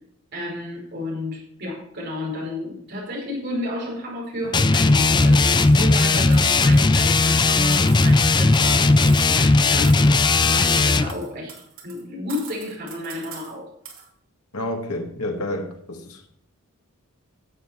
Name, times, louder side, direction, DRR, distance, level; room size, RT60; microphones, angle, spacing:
voice 1, 0.3-11.5 11.8-13.7, left 1 dB, 50° right, 5.2 m, -32 dB
sound 1, 4.5-11.1, left 3 dB, 20° left, 0.4 m, -17 dB
sound 2, 4.7-4.9 5.2-7.4 7.7-9.6 9.8-10.2 10.4-12.0 12.3-13.5 13.8-14.1, right 7 dB, 70° right, 2.7 m, -41 dB
voice 2, 14.5-16.3, left 1 dB, 85° left, 2.1 m, -29 dB
14.0 x 7.8 x 4.6 m
head